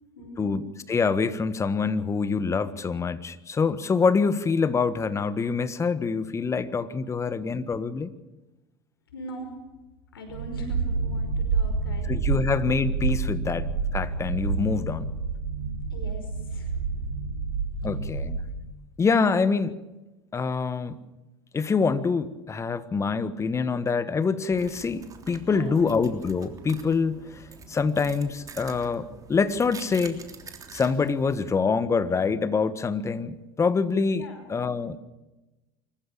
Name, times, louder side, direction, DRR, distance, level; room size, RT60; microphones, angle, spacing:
voice 1, 0.1-0.6 9.1-9.6 10.1-12.1 15.9-17.0 17.8-17.9 25.5-25.9 34.1-34.4, equal, 90° left, 4 dB, 5.2 m, -41 dB
voice 2, 0.9-8.1 12.1-13.7 13.9-15.0 17.8-18.4 19.0-19.8 20.3-21.0 21.5-27.4 27.7-30.2 30.7-34.2 34.5-35.0, left 5 dB, 25° left, 14 dB, 1.5 m, -25 dB
sound 1, 10.3-18.7, right 4 dB, 75° right, 2.1 m, -28 dB
sound 2, 24.5-31.4, right 5 dB, 30° right, 3.4 m, -46 dB
25.0 x 15.0 x 8.8 m, 1.0 s
hypercardioid pair, 85°, 12 cm